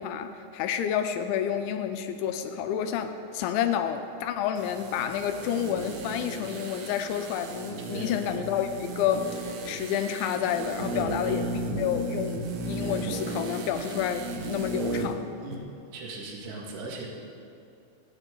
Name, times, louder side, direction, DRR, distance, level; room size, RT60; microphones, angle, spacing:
voice 1, 0.0-15.2, left 9 dB, 80° left, 7 dB, 2.8 m, -29 dB
sound 1, 4.6-15.2 15.5-15.6, right 2 dB, 85° right, 2.1 m, -35 dB
voice 2, 10.9-11.6 15.4-15.7 15.9-17.1, right 2 dB, 60° right, -2 dB, 3.6 m, -39 dB
26.5 x 9.1 x 3.8 m, 2.7 s
omnidirectional pair, 5.7 m